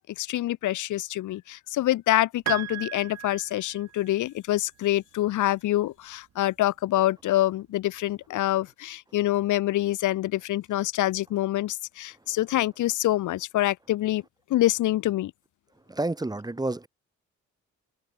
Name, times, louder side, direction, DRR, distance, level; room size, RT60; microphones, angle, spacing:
voice 1, 0.2-14.2 14.5-15.3, left 15 dB, 80° left, 1.2 m, -26 dB
Piano, 2.5-4.1, right 11 dB, 60° right, 1.2 m, -35 dB
voice 2, 15.9-16.9, right 2 dB, 15° right, 1.6 m, -29 dB
cardioid pair, 90°, 30 cm